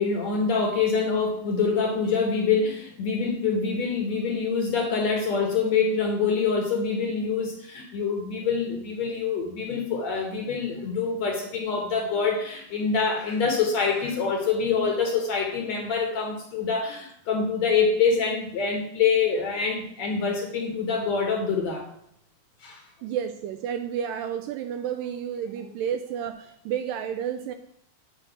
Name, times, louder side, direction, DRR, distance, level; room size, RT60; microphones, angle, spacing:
voice 1, 0.0-21.9 22.6-22.8, left 5 dB, 65° left, 2 dB, 1.9 m, -25 dB
voice 2, 23.0-27.5, right 9 dB, 80° right, 8 dB, 2.0 m, -31 dB
8.9 x 4.5 x 7.1 m, 0.72 s
omnidirectional pair, 4.3 m